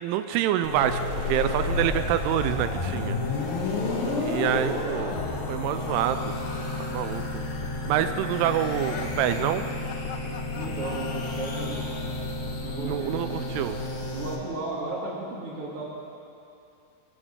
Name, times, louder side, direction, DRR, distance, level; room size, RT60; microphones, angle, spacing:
voice 1, 0.0-3.2 4.2-5.1 5.5-6.4 6.9-7.2 7.9-9.6 12.8-13.8, right 11 dB, 85° right, 10 dB, 2.9 m, -26 dB
sound 1, 0.6-14.4, left 2 dB, 55° left, 3.1 m, -31 dB
sound 2, 8.7-12.3, left 8 dB, 85° left, 3.4 m, -41 dB
voice 2, 10.5-11.8 12.6-13.5 14.1-15.8, right 2 dB, 45° right, -6 dB, 2.1 m, -34 dB
21.0 x 8.1 x 7.8 m, 2.6 s
omnidirectional pair, 5.8 m